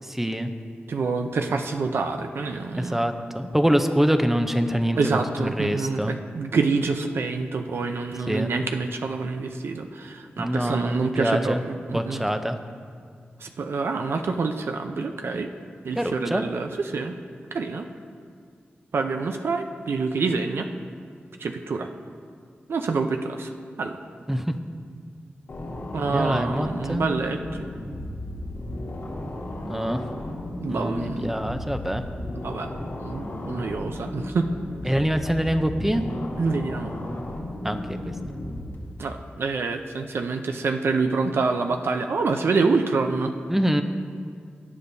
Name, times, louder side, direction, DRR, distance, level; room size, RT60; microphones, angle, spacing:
voice 1, 0.0-0.5 2.8-5.0 5.6-6.2 8.3-8.5 10.4-11.6 11.9-12.6 16.0-16.4 24.3-24.5 26.1-27.1 29.7-30.1 30.7-32.0 34.8-36.0 37.6-38.1 43.5-43.8, equal, 10° right, 8 dB, 0.6 m, -25 dB
voice 2, 0.9-3.0 5.0-12.2 13.4-15.5 15.8-17.1 17.5-17.9 18.9-20.7 21.4-21.9 22.7-23.5 23.8-24.0 25.9-27.7 30.6-31.3 32.4-32.7 33.0-34.5 35.9-36.0 36.4-36.9 39.0-43.3, right 4 dB, 80° right, 5 dB, 0.5 m, -27 dB
sound 1, 25.5-38.8, left 1 dB, 85° left, 2.0 m, -34 dB
17.0 x 9.6 x 2.7 m, 2.1 s
wide cardioid pair, 75°, 4 cm